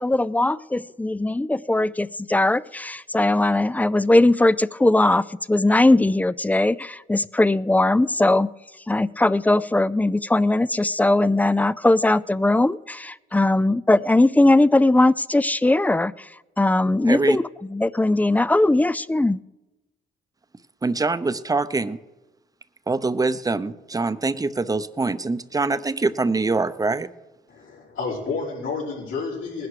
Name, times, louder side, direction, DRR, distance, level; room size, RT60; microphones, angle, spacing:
voice 1, 0.0-8.5 8.9-16.1 16.6-17.4 17.7-19.4, left 2 dB, 10° left, 19 dB, 0.4 m, -19 dB
voice 2, 17.0-17.4 20.8-22.0 22.9-27.1, right 3 dB, 20° right, 13 dB, 0.7 m, -24 dB
voice 3, 27.5-29.7, left 4 dB, 80° left, -9 dB, 5.4 m, -30 dB
19.5 x 11.0 x 4.9 m, 1.1 s
cardioid pair, 90°, 20 cm